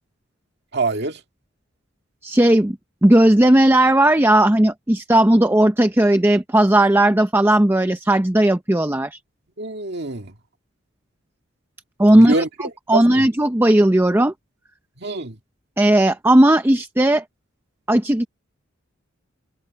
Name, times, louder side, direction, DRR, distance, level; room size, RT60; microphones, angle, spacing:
voice 1, 0.7-1.2 9.6-10.3 12.1-12.5 12.9-13.3 15.0-15.4, right 3 dB, 55° right, 2.1 m, -24 dB
voice 2, 2.2-2.8 3.0-9.2 12.0-12.4 12.9-14.3 15.8-17.2 17.9-18.3, right 1 dB, 10° right, 0.6 m, -16 dB
head